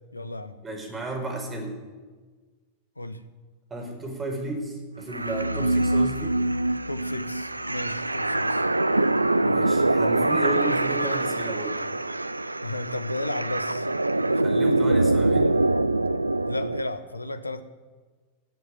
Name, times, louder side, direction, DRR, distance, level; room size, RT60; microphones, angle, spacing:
voice 1, 0.1-0.6 3.0-3.2 6.9-8.6 12.6-13.9 16.4-17.6, left 1 dB, 85° left, 11 dB, 1.1 m, -33 dB
voice 2, 0.6-1.8 3.7-6.4 9.4-11.8 14.3-15.6, right 1 dB, 20° right, 2 dB, 5.2 m, -33 dB
sound 1, 5.1-16.8, right 2 dB, 85° right, 0.5 m, -24 dB
18.0 x 8.1 x 9.6 m, 1.4 s
figure-of-eight pair, 90°, 0 cm